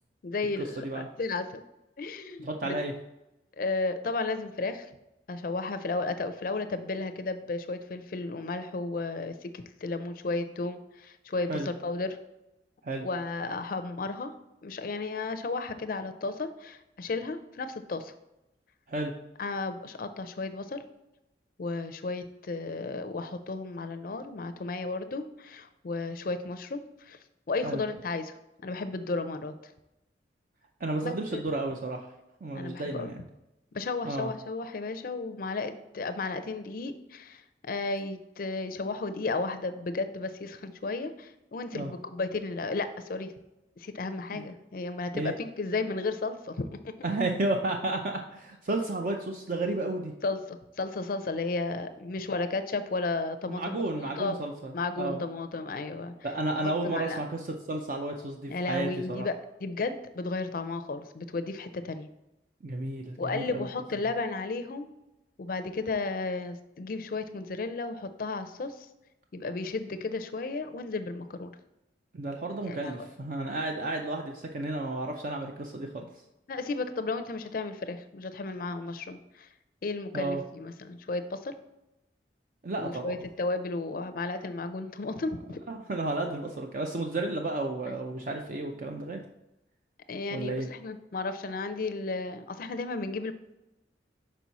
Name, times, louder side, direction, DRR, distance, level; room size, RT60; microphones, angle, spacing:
voice 1, 0.2-1.6 2.0-2.8 3.6-4.9 5.3-12.2 13.0-14.3 14.6-18.1 19.4-20.8 21.6-27.2 27.5-28.3 28.6-29.7 31.0-31.4 32.5-33.1 33.7-43.3 43.8-46.9 50.2-54.4 54.7-56.1 56.6-57.2 58.5-62.1 63.2-64.9 65.4-68.9 69.3-71.5 72.6-73.1 76.5-79.5 79.8-81.5 82.8-85.6 90.1-93.3, left 3 dB, 55° left, 9 dB, 0.4 m, -33 dB
voice 2, 0.8-1.1 2.4-2.9 11.5-11.7 12.8-13.1 18.9-19.1 27.6-27.8 30.8-32.1 32.4-33.2 34.0-34.3 41.7-41.9 44.3-44.4 45.1-45.3 47.0-50.1 53.5-55.2 56.2-59.3 62.6-63.6 72.1-76.1 80.1-80.4 82.6-83.2 85.7-89.2 90.3-90.7, right 2 dB, 50° right, 3 dB, 0.5 m, -32 dB
6.0 x 4.5 x 4.1 m, 0.92 s
head